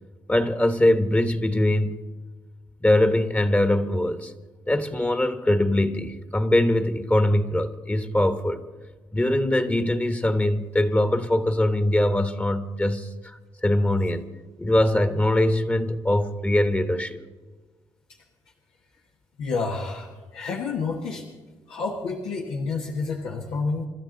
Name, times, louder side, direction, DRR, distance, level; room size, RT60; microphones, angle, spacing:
voice 1, 0.3-2.0 2.8-4.3 4.7-8.6 9.1-14.3 14.6-17.2, left 1 dB, 15° left, 1.2 m, -22 dB
voice 2, 19.4-21.3 21.7-23.9, left 4 dB, 85° left, 1.5 m, -29 dB
26.5 x 12.5 x 3.9 m
supercardioid pair, 65°, 9 cm